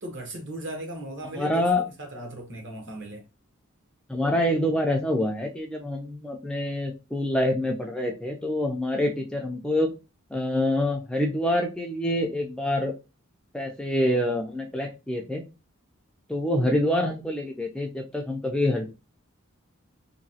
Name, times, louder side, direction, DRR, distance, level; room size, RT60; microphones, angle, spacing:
voice 1, 0.0-1.7 2.0-3.2, right 1 dB, 60° right, 0.9 m, -37 dB
voice 2, 1.3-1.9 4.1-9.9 10.3-12.9 13.5-15.4 16.3-18.9, left 1 dB, 5° left, 0.3 m, -26 dB
2.9 x 2.7 x 2.7 m
head